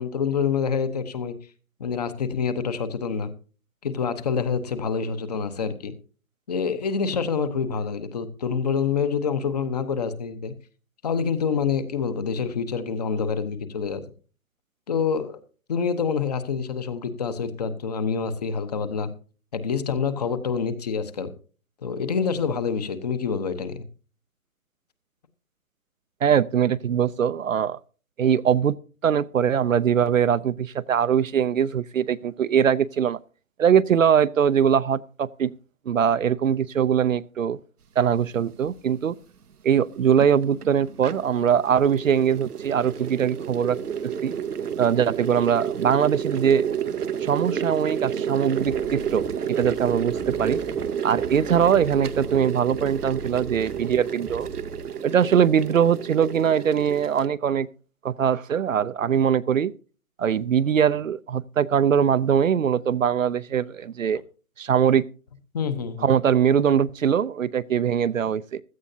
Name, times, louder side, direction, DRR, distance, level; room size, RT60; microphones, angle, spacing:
voice 1, 0.0-1.3 1.8-3.3 3.8-5.9 6.5-10.5 11.0-14.0 14.9-15.4 15.7-19.1 19.5-21.3 21.8-23.8 65.5-66.1, left 6 dB, 25° left, 1.0 m, -26 dB
voice 2, 26.2-27.8 28.2-28.8 29.0-33.2 33.6-35.5 35.9-37.6 38.0-39.1 39.6-43.8 44.0-44.4 44.8-46.7 47.2-50.6 51.0-54.5 55.0-57.7 58.0-59.7 60.2-64.2 64.6-65.1 66.0-68.6, right 8 dB, 60° right, 0.6 m, -22 dB
sound 1, 38.7-38.8 39.8-57.3, right 8 dB, 90° right, 0.9 m, -31 dB
sound 2, 48.6-54.8, right 1 dB, ahead, 1.1 m, -42 dB
16.0 x 13.0 x 2.7 m
hypercardioid pair, 155°, 44 cm